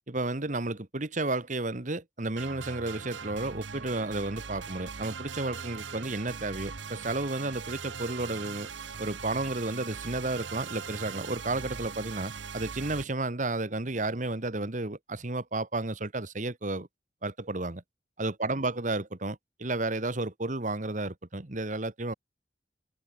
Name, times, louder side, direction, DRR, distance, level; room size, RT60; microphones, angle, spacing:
voice 1, 0.1-8.7 9.0-16.9 17.2-17.8 18.2-22.1, right 2 dB, 45° right, 1.4 m, -32 dB
sound 1, 2.4-13.0, right 5 dB, 85° right, 1.1 m, -40 dB
head